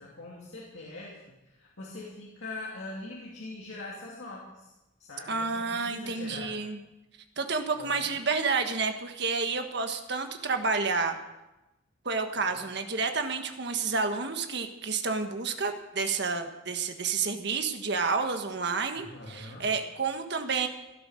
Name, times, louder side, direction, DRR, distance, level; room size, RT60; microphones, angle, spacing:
voice 1, 0.0-4.7 5.0-6.5 7.8-8.1 12.3-12.7 18.9-19.7, left 2 dB, 65° left, -4 dB, 2.7 m, -43 dB
voice 2, 5.3-6.8 7.4-11.2 12.0-20.7, right 4 dB, 55° right, 6 dB, 1.5 m, -30 dB
16.0 x 11.5 x 6.5 m, 1.0 s
head